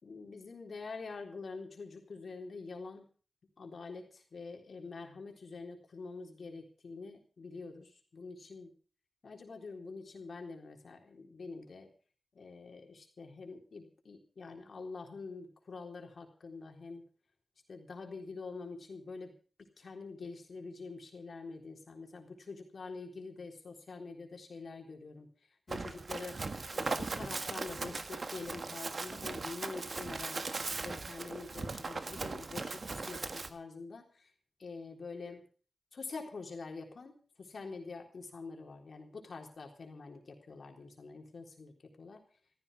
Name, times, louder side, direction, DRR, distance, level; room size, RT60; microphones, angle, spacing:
voice 1, 0.0-3.1 3.6-8.7 9.2-11.9 12.3-17.0 17.7-19.3 19.6-25.3 25.7-26.4 26.7-34.3 34.6-35.4 35.9-42.2, left 4 dB, 75° left, 2 dB, 3.8 m, -46 dB
Run, 25.7-33.5, right 3 dB, 60° right, 1.5 m, -39 dB
15.0 x 14.5 x 5.5 m, 0.40 s
wide cardioid pair, 95°, 0 cm